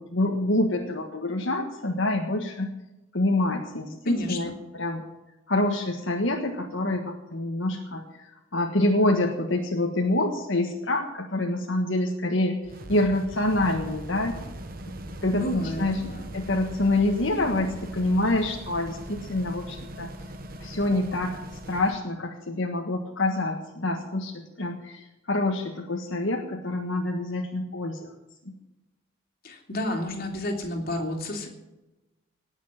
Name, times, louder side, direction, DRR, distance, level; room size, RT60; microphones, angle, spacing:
voice 1, 0.0-2.7 3.1-5.0 5.5-8.2 8.5-12.6 12.9-14.4 15.2-16.0 16.3-20.1 20.6-21.4 21.7-28.1 28.4-28.5, left 1 dB, 70° left, 1 dB, 1.6 m, -26 dB
voice 2, 4.0-4.5 15.3-16.4 29.4-31.5, left 1 dB, 50° left, 1 dB, 3.1 m, -31 dB
sound 1, 12.6-22.0, right 1 dB, 45° right, 1.2 m, -40 dB
18.5 x 7.4 x 7.5 m, 0.99 s
head